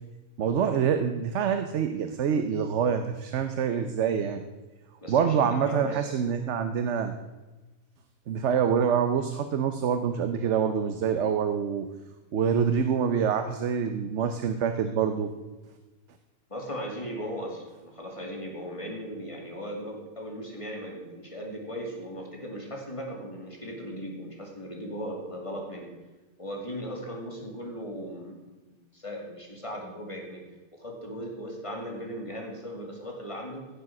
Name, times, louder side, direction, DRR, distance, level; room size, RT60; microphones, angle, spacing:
voice 1, 0.4-4.4 5.1-7.1 8.3-11.9 12.3-15.3, right 7 dB, 60° right, 8 dB, 1.0 m, -26 dB
voice 2, 5.0-6.1 16.5-25.9 26.4-28.4 28.7-30.4 30.8-33.7, equal, 20° left, 0 dB, 2.6 m, -37 dB
16.0 x 7.6 x 6.0 m, 1.2 s
omnidirectional pair, 1.5 m